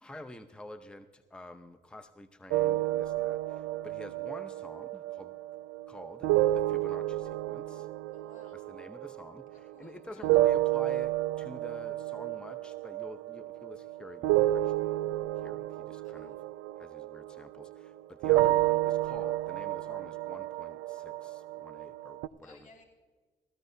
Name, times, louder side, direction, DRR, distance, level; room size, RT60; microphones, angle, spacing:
voice 1, 0.0-5.3 5.9-7.9 8.5-14.9 15.4-16.4 16.8-22.7, left 1 dB, 5° left, 9 dB, 0.7 m, -48 dB
sound 1, 2.5-9.9 10.2-17.9 18.2-22.3, right 16 dB, 90° right, 0.4 m, -30 dB
voice 2, 8.1-8.6 9.5-10.2 16.0-16.4 22.3-22.8, left 3 dB, 40° left, -3 dB, 3.1 m, -59 dB
19.0 x 14.0 x 2.7 m, 1.5 s
supercardioid pair, 70°, 20 cm